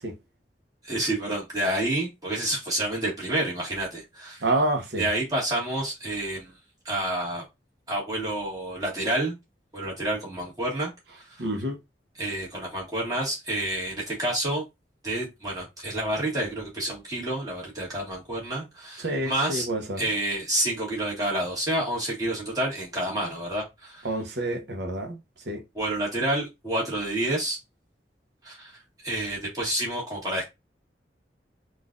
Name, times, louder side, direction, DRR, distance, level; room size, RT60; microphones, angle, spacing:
voice 1, 0.8-4.4 5.0-6.5 6.8-7.4 7.9-9.3 9.7-10.9 12.2-14.6 15.0-19.7 20.0-24.1 25.7-27.6 28.4-28.7 29.0-30.5, right 1 dB, 20° right, 1.6 m, -29 dB
voice 2, 4.4-5.0 11.4-11.8 19.0-20.0 24.0-25.2 25.5-25.6, right 1 dB, 75° right, 0.8 m, -28 dB
3.8 x 2.5 x 2.3 m
head